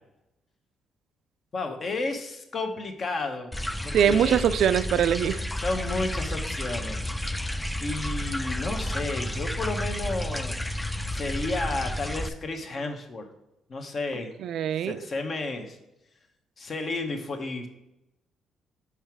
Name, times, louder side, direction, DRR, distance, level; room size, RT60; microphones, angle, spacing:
voice 1, 1.5-3.5 3.8-4.5 5.6-7.1 7.8-10.6 11.1-13.3 13.7-14.3 14.8-15.8 16.6-17.7, left 3 dB, 45° left, 5 dB, 1.0 m, -32 dB
sound 1, 3.5-12.3, left 1 dB, 10° left, 0.4 m, -31 dB
voice 2, 3.9-5.4 14.4-15.0, right 9 dB, 75° right, 14 dB, 0.3 m, -22 dB
5.6 x 4.7 x 4.5 m, 0.91 s
cardioid pair, 90°, 0 cm